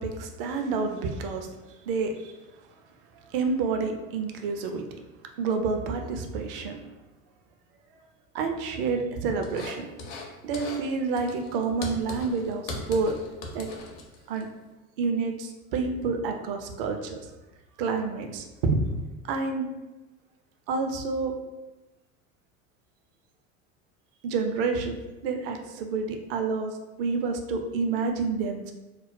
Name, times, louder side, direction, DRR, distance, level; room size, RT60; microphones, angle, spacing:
voice 1, 0.0-1.5 1.9-2.3 3.2-4.8 5.4-6.8 8.3-9.9 10.4-13.1 13.5-13.7 14.3-14.5 15.0-17.1 17.8-18.8 19.2-19.7 20.7-21.3 24.2-25.0 25.2-28.7, right 4 dB, 45° right, 4 dB, 0.4 m, -28 dB
sound 1, 9.4-10.3 10.5-10.9 11.1-14.4, left 2 dB, 45° left, 0.6 m, -38 dB
2.3 x 2.0 x 3.6 m, 1.1 s
figure-of-eight pair, 70°, 39 cm